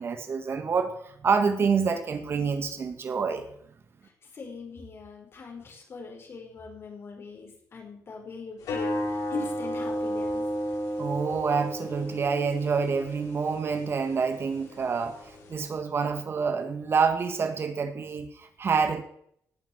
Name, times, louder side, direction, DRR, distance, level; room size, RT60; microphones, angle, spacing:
voice 1, 0.0-3.4 11.0-19.0, right 5 dB, 45° right, 8 dB, 1.7 m, -27 dB
voice 2, 4.3-10.4, left 3 dB, 45° left, 1 dB, 5.1 m, -41 dB
sound 1, 8.6-15.5, equal, 90° left, 7.7 m, -33 dB
17.5 x 7.2 x 8.0 m, 0.69 s
cardioid pair, 130°, 6 cm